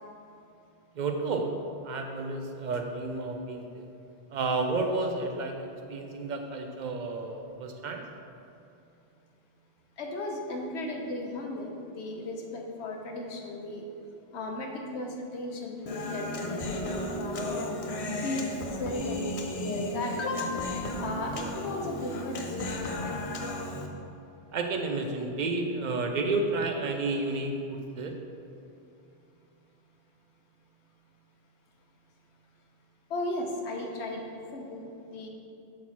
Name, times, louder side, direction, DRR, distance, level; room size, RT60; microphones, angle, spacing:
voice 1, 0.9-1.5 1.8-3.9 4.3-8.0 24.5-28.2, right 3 dB, 55° right, 3 dB, 0.6 m, -31 dB
voice 2, 10.0-13.8 14.3-17.7 18.2-23.2 33.1-35.3, left 2 dB, 80° left, 1 dB, 1.1 m, -35 dB
Human voice, 15.9-23.9, left 1 dB, 50° left, 0.4 m, -34 dB
5.9 x 4.3 x 4.2 m, 2.7 s
omnidirectional pair, 1.1 m